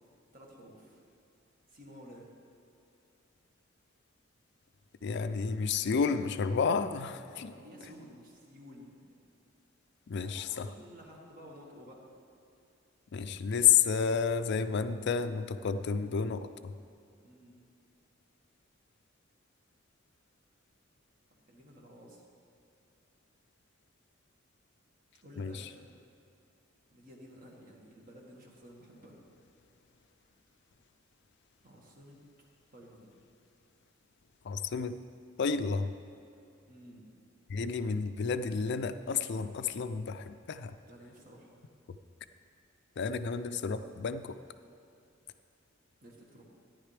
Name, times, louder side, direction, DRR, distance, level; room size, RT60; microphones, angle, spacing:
voice 1, 0.3-1.0 1.7-2.3 7.3-9.0 10.2-12.1 17.2-17.6 21.5-22.3 25.2-25.9 26.9-29.2 31.6-32.2 32.7-33.1 36.7-37.1 40.9-41.5 46.0-46.4, equal, 45° right, -2 dB, 1.7 m, -53 dB
voice 2, 5.0-7.5 10.1-10.7 13.1-16.7 25.4-25.6 34.4-35.0 35.4-35.9 37.5-40.7 43.0-44.4, left 6 dB, 60° left, 11 dB, 0.4 m, -31 dB
14.0 x 10.5 x 3.4 m, 2.6 s
head